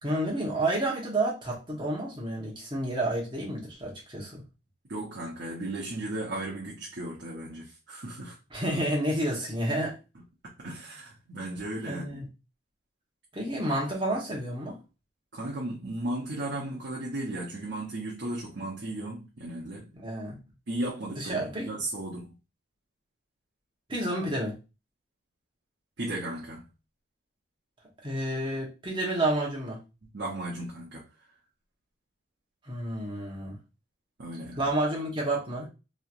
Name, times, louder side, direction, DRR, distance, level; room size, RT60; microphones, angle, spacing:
voice 1, 0.0-4.4 8.5-10.0 11.8-12.3 13.3-14.8 20.0-20.4 21.2-21.7 23.9-24.6 28.0-29.8 32.6-33.6 34.6-35.7, right 1 dB, 25° right, 1.0 m, -30 dB
voice 2, 4.9-8.4 10.4-12.2 15.3-19.9 20.7-22.3 26.0-26.7 30.1-31.0 34.2-34.6, right 1 dB, 70° right, 0.8 m, -35 dB
3.1 x 2.8 x 2.5 m
head